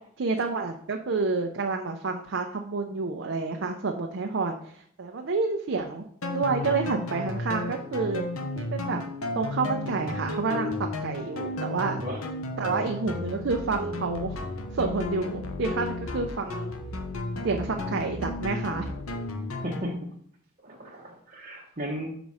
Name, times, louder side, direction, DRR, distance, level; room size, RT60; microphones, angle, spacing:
voice 1, 0.2-6.0 6.3-8.2 8.6-9.0 9.4-10.7 11.0-12.0 12.6-14.4 14.7-16.7 17.4-18.9, right 4 dB, 60° right, 2 dB, 0.5 m, -29 dB
sound 1, 6.2-19.9, left 2 dB, 85° left, 0.8 m, -33 dB
voice 2, 19.6-20.0 20.6-22.1, equal, 35° right, -5 dB, 0.9 m, -35 dB
6.1 x 4.1 x 4.8 m, 0.64 s
head